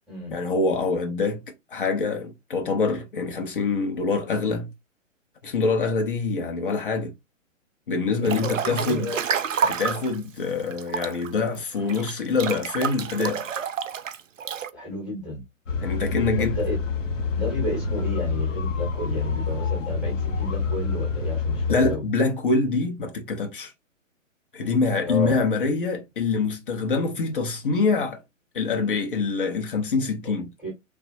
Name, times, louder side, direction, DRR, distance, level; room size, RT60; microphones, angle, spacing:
voice 1, 0.3-1.4 1.7-4.7 5.4-7.1 7.9-9.2 9.6-13.4 15.8-16.6 21.7-23.7 24.5-28.2 28.5-30.5, left 4 dB, 40° left, 0.7 m, -25 dB
voice 2, 8.2-9.2 14.7-15.4 16.4-16.8 17.3-22.0 25.0-25.4 30.2-30.3 30.6-30.7, left 1 dB, ahead, 0.7 m, -31 dB
Breathing / Bathtub (filling or washing) / Splash splatter, 8.2-10.2 10.7-14.7, right 7 dB, 70° right, 0.5 m, -29 dB
sound 1, 15.7-22.0, left 5 dB, 65° left, 0.9 m, -27 dB
3.3 x 2.2 x 2.6 m
figure-of-eight pair, 125°, 40 cm